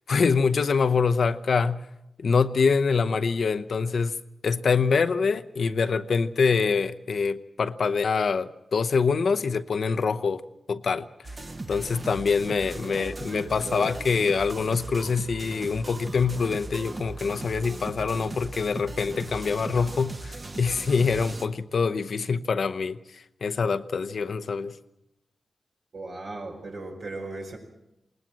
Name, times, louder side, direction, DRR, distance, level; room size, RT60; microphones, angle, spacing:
voice 1, 0.1-1.8 2.2-4.2 4.4-10.4 10.7-11.1 11.7-23.0 23.4-24.8, left 5 dB, 75° left, 0.8 m, -25 dB
sound 1, 11.2-21.5, right 2 dB, 45° right, 1.4 m, -38 dB
voice 2, 12.8-13.9 25.9-27.6, right 2 dB, 75° right, 5.2 m, -38 dB
20.5 x 18.5 x 7.5 m
cardioid pair, 50°, 0 cm